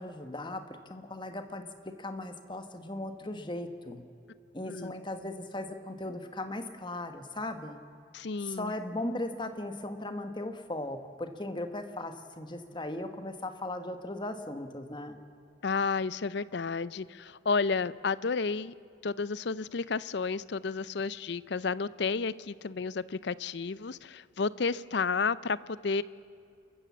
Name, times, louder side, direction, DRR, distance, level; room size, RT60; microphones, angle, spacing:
voice 1, 0.0-4.0 4.5-7.8 8.4-15.2, left 1 dB, 25° left, 7 dB, 1.2 m, -38 dB
voice 2, 8.1-8.7 15.6-18.7 19.0-26.0, left 4 dB, 55° left, 18 dB, 0.5 m, -31 dB
28.5 x 14.5 x 7.3 m, 2.5 s
head